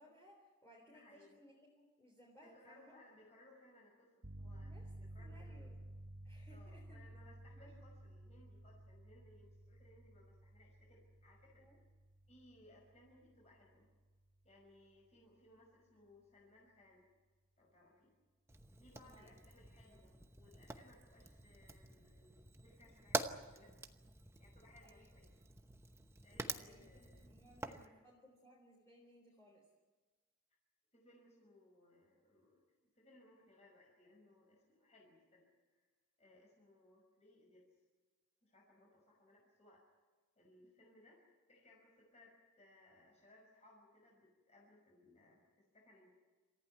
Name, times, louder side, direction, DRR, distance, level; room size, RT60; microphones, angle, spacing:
voice 1, 0.0-2.9 4.6-5.7 6.2-7.1 7.5-7.8 11.6-11.8 18.9-19.3 19.9-20.0 24.8-25.1 26.3-29.7 40.6-40.7, equal, 15° left, -1 dB, 3.6 m, -64 dB
voice 2, 0.9-1.4 2.4-4.1 4.4-4.7 5.0-5.6 6.5-11.7 12.3-13.9 14.4-17.0 17.6-18.1 18.8-22.4 22.6-23.9 24.4-25.3 26.2-27.3 27.6-27.9 30.9-32.6 32.9-35.9 36.2-37.7 38.4-39.8 40.4-41.2 41.5-46.1, left 1 dB, 30° left, -3 dB, 5.9 m, -65 dB
sound 1, 4.2-14.8, right 1 dB, 60° right, 1.5 m, -54 dB
Fire, 18.5-27.9, right 2 dB, 10° right, 0.9 m, -47 dB
28.0 x 15.0 x 9.5 m, 1.3 s
head